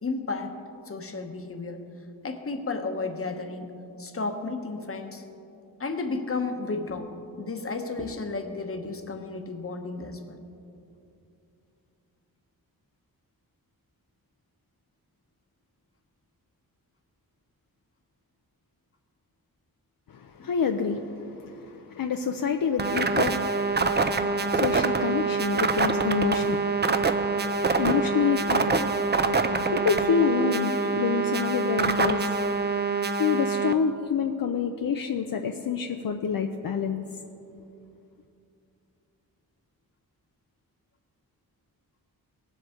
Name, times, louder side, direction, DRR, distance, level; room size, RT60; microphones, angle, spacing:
voice 1, 0.0-0.6 0.9-1.8 2.2-3.7 4.0-5.2 5.8-7.1 7.4-10.4 20.4-20.5, left 3 dB, 35° left, 5 dB, 1.1 m, -33 dB
voice 2, 20.1-29.1 29.7-32.2 33.2-37.0, left 6 dB, 65° left, 4 dB, 0.6 m, -28 dB
sound 1, 22.8-33.7, right 4 dB, 30° right, 0.5 m, -25 dB
18.0 x 7.8 x 3.7 m, 2.7 s
wide cardioid pair, 80°, 37 cm